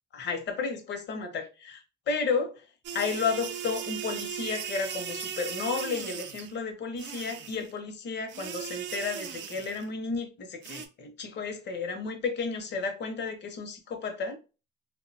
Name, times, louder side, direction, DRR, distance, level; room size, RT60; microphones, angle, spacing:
voice 1, 0.1-1.8 2.1-2.6 2.9-14.4, left 5 dB, 60° left, 0.7 m, -32 dB
sound 1, 2.8-6.5 7.0-7.7 8.3-9.9 10.6-10.9, right 8 dB, 65° right, 0.4 m, -38 dB
2.5 x 2.1 x 2.6 m
cardioid pair, 90°, 20 cm